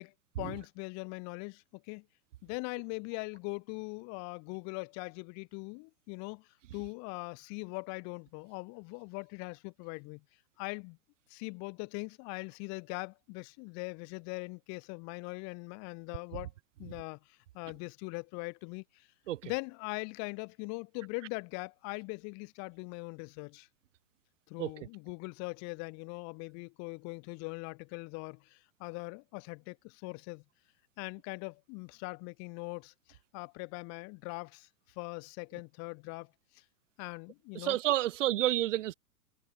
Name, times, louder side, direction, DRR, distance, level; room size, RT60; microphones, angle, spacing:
voice 1, 0.0-2.0 2.4-10.2 10.6-11.0 11.3-16.5 16.8-19.1 19.4-23.7 24.5-30.4 31.0-34.7 35.0-36.6 37.0-37.8, left 32 dB, 35° left, 5.4 m, -41 dB
voice 2, 37.5-38.9, right 14 dB, 50° right, 6.9 m, -30 dB
figure-of-eight pair, 110°, 48 cm